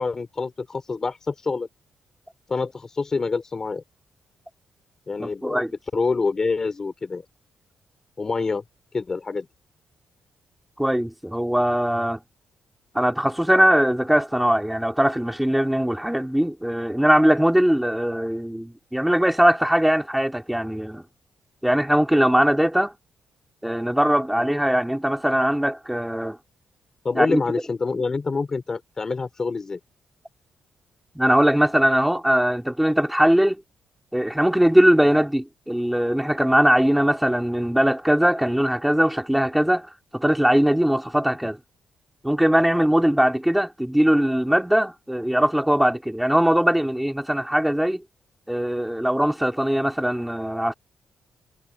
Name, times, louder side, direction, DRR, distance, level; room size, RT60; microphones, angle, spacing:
voice 1, 0.0-1.7 2.5-3.8 5.1-5.6 5.9-7.2 8.2-8.6 8.9-9.5 24.3-24.5 27.0-29.8, left 4 dB, 25° left, 3.5 m, -26 dB
voice 2, 5.2-5.7 10.8-12.2 12.9-21.0 21.6-22.9 23.6-26.4 27.1-27.4 31.2-33.6 34.1-39.9 40.1-41.6 42.2-48.0 48.5-50.7, equal, 5° right, 2.5 m, -20 dB
cardioid pair, 170°, 2 cm